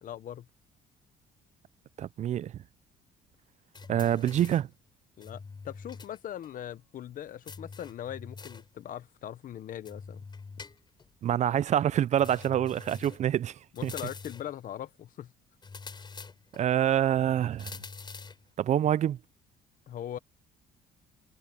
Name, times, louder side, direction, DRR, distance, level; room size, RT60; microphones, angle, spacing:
voice 1, 0.0-0.5 5.2-10.2 13.7-15.3 19.9-20.2, left 11 dB, 55° left, 1.0 m, -40 dB
voice 2, 2.0-2.5 3.9-4.7 11.2-13.9 16.5-17.7 18.6-19.2, right 10 dB, 45° right, 0.4 m, -26 dB
sound 1, 3.7-4.7 5.2-6.2 6.4-6.5 7.5-8.7 9.9-11.1 12.2-13.3 13.8-14.6 15.6-16.7 17.6-18.5, left 4 dB, 25° left, 3.6 m, -45 dB
cardioid pair, 110°, 17 cm